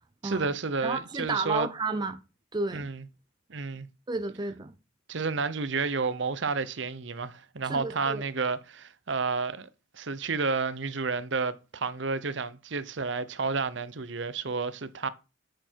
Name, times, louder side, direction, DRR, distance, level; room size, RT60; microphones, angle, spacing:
voice 1, 0.2-1.7 2.7-3.0 3.5-3.9 5.1-9.7 9.9-15.1, right 4 dB, 60° right, 0.8 m, -31 dB
voice 2, 0.8-2.2 2.5-2.9 4.1-4.7 7.6-8.2, right 3 dB, 20° right, 0.6 m, -31 dB
7.9 x 6.7 x 4.6 m
head